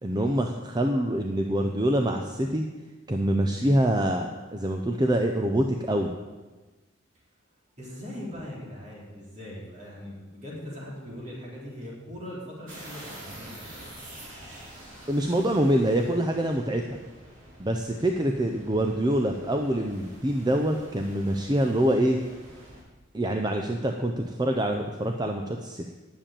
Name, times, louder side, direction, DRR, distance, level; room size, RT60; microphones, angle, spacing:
voice 1, 0.0-2.7 3.1-6.1 15.1-17.0 17.6-22.2 23.1-25.8, right 1 dB, 20° right, 3 dB, 0.6 m, -25 dB
voice 2, 7.8-13.6, equal, 35° right, -5 dB, 3.7 m, -40 dB
sound 1, 12.7-22.8, right 1 dB, 90° right, 4.1 m, -47 dB
10.0 x 7.1 x 8.9 m, 1.3 s
head